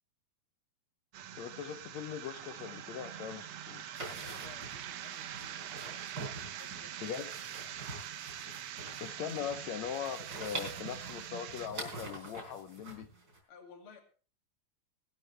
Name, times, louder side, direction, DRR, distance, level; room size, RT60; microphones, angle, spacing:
sound 1, 1.1-11.7, right 10 dB, 75° right, 1.5 m, -44 dB
voice 1, 1.4-4.0 7.0-7.3 9.0-13.1, left 8 dB, 80° left, 9 dB, 1.6 m, -40 dB
sound 2, 3.9-13.4, right 2 dB, 25° right, 4.3 m, -46 dB
voice 2, 4.2-6.1 6.4-7.2 13.5-14.0, left 5 dB, 40° left, 4 dB, 2.8 m, -56 dB
20.0 x 12.5 x 3.3 m, 0.38 s
omnidirectional pair, 4.2 m